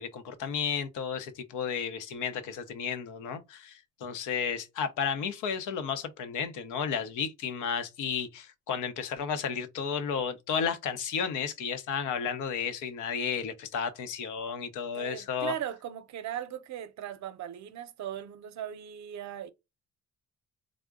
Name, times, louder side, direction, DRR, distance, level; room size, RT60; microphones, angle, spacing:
voice 1, 0.0-15.5, left 7 dB, 90° left, 0.8 m, -33 dB
voice 2, 14.9-19.5, right 10 dB, 65° right, 0.6 m, -38 dB
3.6 x 2.1 x 3.5 m
cardioid pair, 90°, 30 cm